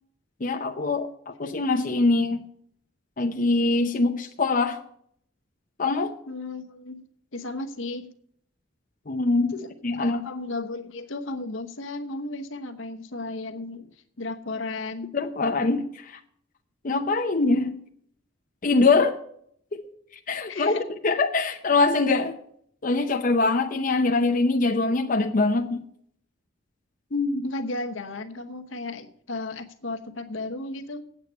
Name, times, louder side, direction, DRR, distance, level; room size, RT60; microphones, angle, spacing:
voice 1, 0.4-2.4 3.2-4.8 5.8-6.1 9.1-9.5 9.8-10.3 15.1-16.2 16.8-17.7 18.6-19.2 19.7-19.8 20.3-20.8 21.0-22.3 22.8-25.8 27.1-27.5, left 3 dB, 40° left, 4 dB, 0.7 m, -23 dB
voice 2, 6.3-7.0 7.3-8.1 9.5-13.9 14.2-15.1 20.5-20.9 27.4-31.0, left 2 dB, 70° left, 7 dB, 1.1 m, -34 dB
8.5 x 8.1 x 8.0 m, 0.66 s
head